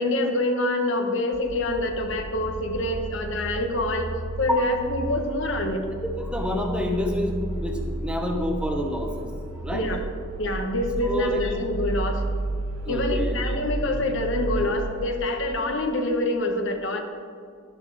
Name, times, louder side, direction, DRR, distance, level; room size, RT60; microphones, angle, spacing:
voice 1, 0.0-4.1 4.4-5.8 9.2-9.3 9.7-10.0 10.4-12.2 12.9-17.0, left 1 dB, 65° left, 4 dB, 1.3 m, -26 dB
sound 1, 1.3-15.6, right 2 dB, 90° right, 0.6 m, -33 dB
voice 2, 6.0-7.3 7.6-9.3 9.6-9.9 11.0-11.4 12.9-13.4, left 1 dB, 5° right, 2 dB, 1.0 m, -28 dB
11.5 x 11.0 x 4.2 m, 2.3 s
head